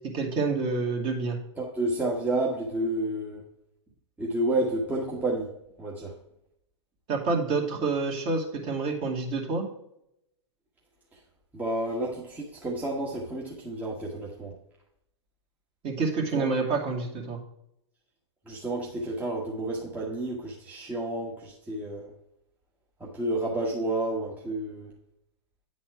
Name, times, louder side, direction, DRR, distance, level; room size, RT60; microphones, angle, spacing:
voice 1, 0.1-1.4 7.1-9.6 15.8-17.4, right 4 dB, 35° right, 0 dB, 2.1 m, -28 dB
voice 2, 1.6-3.4 4.2-5.5 5.8-6.1 11.5-14.5 16.3-16.5 18.5-22.1 23.0-24.9, right 1 dB, 10° right, -3 dB, 1.3 m, -30 dB
9.2 x 4.2 x 4.6 m, 0.80 s
hypercardioid pair, 120°, 15 cm